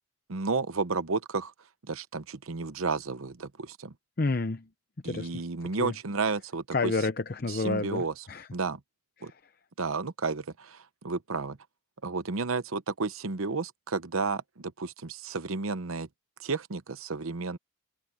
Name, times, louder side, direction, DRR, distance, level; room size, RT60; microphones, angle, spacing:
voice 1, 0.3-1.5 1.9-3.9 5.0-6.9 7.5-8.1 8.5-8.8 9.2-9.3 9.8-11.6 12.0-16.1 16.4-17.6, right 4 dB, 80° right, 0.9 m, -32 dB
voice 2, 4.2-4.7 5.0-5.4 5.8-5.9 6.7-8.5 9.2-9.4, left 3 dB, 45° left, 0.7 m, -30 dB
head